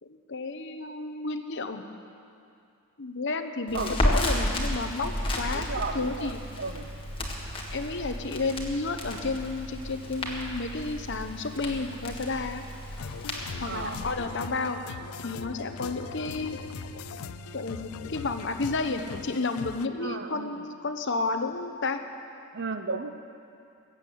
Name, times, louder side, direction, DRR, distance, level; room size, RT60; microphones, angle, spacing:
voice 1, 0.0-1.8 3.0-5.7 5.9-6.4 7.7-12.6 13.6-16.6 17.5-22.0, left 3 dB, 55° left, 7 dB, 0.9 m, -31 dB
Crackle, 3.7-14.1, left 1 dB, 25° left, 1.8 m, -33 dB
voice 2, 3.7-4.1 5.5-6.9 13.6-14.0 20.0-20.7 22.5-23.1, right 4 dB, 50° right, 8 dB, 0.8 m, -34 dB
sound 1, 4.7-18.2, right 2 dB, 75° right, 1.5 m, -46 dB
sound 2, 13.0-19.9, left 7 dB, 75° left, 0.4 m, -41 dB
20.5 x 8.2 x 8.5 m, 2.6 s
head